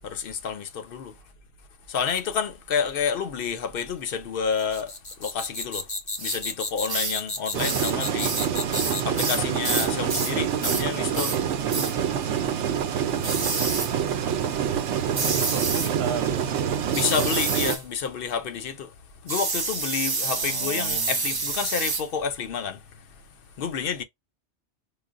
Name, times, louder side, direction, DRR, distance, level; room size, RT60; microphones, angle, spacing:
voice 1, 0.0-1.1 1.9-4.9 5.2-5.8 6.2-8.3 9.0-11.4 16.9-18.9 19.2-22.8 23.6-24.0, left 6 dB, 60° left, 0.7 m, -29 dB
sound 1, 4.6-9.2, left 2 dB, 25° left, 0.6 m, -32 dB
sound 2, 6.2-6.4 6.9-7.2 7.6-7.9 8.2-10.4 10.6-10.9 11.1-11.4 11.7-12.0 13.2-13.9 15.1-15.9 16.9-17.8 19.3-22.1, right 4 dB, 30° right, 0.4 m, -28 dB
sound 3, 7.5-17.8, right 8 dB, 90° right, 0.9 m, -26 dB
voice 2, 15.1-16.7 20.3-21.2, right 7 dB, 55° right, 0.9 m, -35 dB
4.8 x 2.0 x 2.4 m
omnidirectional pair, 1.2 m